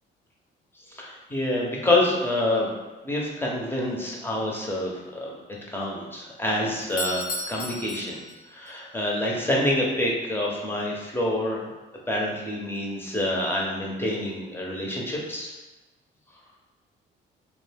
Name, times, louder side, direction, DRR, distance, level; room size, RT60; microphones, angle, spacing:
voice 1, 0.9-2.7 3.0-5.4 5.7-8.2 8.5-11.6 12.1-15.5, left 1 dB, 10° left, -3 dB, 0.6 m, -27 dB
Doorbell, 6.8-8.8, left 2 dB, 75° left, 0.5 m, -34 dB
2.4 x 2.2 x 3.3 m, 1.1 s
cardioid pair, 90°, 20 cm